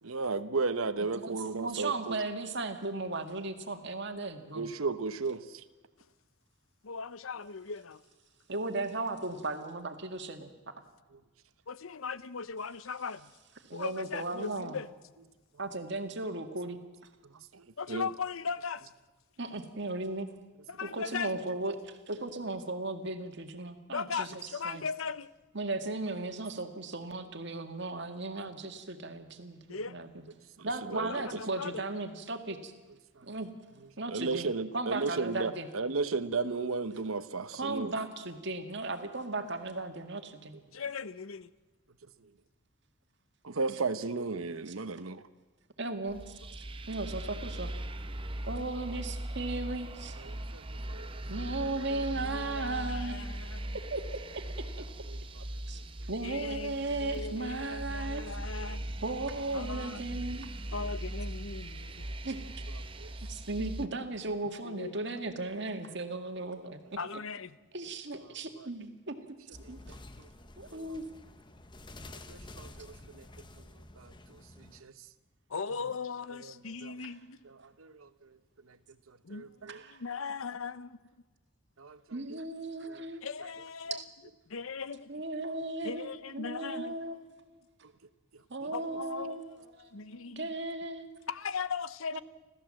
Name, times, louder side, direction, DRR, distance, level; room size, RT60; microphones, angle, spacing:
voice 1, 0.0-2.2 4.5-5.6 17.2-18.1 29.7-29.8 30.6-31.4 33.2-33.3 34.1-37.9 43.4-45.2 50.2-51.1 55.1-55.4 55.7-55.8 60.8-60.9 63.0-63.1 68.6-68.7 69.6-70.3 70.7-70.9 72.3-73.3 73.6-73.7 74.0-74.9 76.4-76.5 76.8-76.9 77.4-78.4 78.6-78.8 79.1-79.8 81.8-82.0 82.3-82.4 82.9-83.0 88.6-88.7, right 4 dB, 90° right, 1.0 m, -35 dB
voice 2, 1.2-4.7 8.5-10.8 13.7-14.8 15.6-16.8 19.4-20.3 20.8-24.8 25.5-29.6 29.9-30.2 30.6-32.7 33.2-33.5 34.0-34.5 34.7-35.7 37.6-40.6 44.7-44.8 45.8-46.3 46.9-47.7 48.4-50.2 51.3-53.2 53.7-54.9 55.7-58.4 59.0-60.5 62.2-62.6 63.2-66.8 67.7-69.2 69.5-69.8 70.6-71.1 77.0-77.1 79.7-80.0 82.1-83.3 85.1-87.4 88.5-89.4 89.7-91.1 92.1-92.2, right 2 dB, 55° right, 1.9 m, -36 dB
voice 3, 6.8-8.0 11.7-13.3 13.7-14.9 17.8-18.9 20.7-21.4 23.9-25.3 29.7-30.0 30.9-31.8 40.7-41.5 51.2-53.8 56.2-58.9 59.5-60.1 60.7-62.1 64.6-65.0 67.0-67.6 75.5-77.4 79.2-81.0 83.2-84.0 84.5-85.2 85.8-87.0 88.7-90.5 91.3-92.2, left 5 dB, 80° left, 0.8 m, -39 dB
sound 1, 46.1-63.9, right 1 dB, 25° right, 0.7 m, -39 dB
sound 2, 69.5-74.8, left 2 dB, 20° left, 0.9 m, -50 dB
30.0 x 14.0 x 7.7 m
head